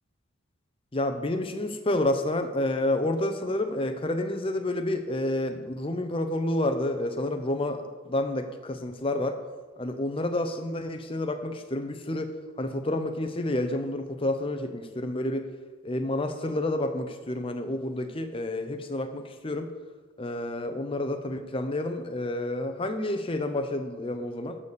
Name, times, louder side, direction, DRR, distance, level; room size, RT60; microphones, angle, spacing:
voice 1, 0.9-9.4 9.8-12.3 12.6-15.5 15.8-19.7 20.2-24.6, left 1 dB, 25° left, 7 dB, 0.7 m, -29 dB
12.5 x 4.2 x 6.7 m, 1.4 s
head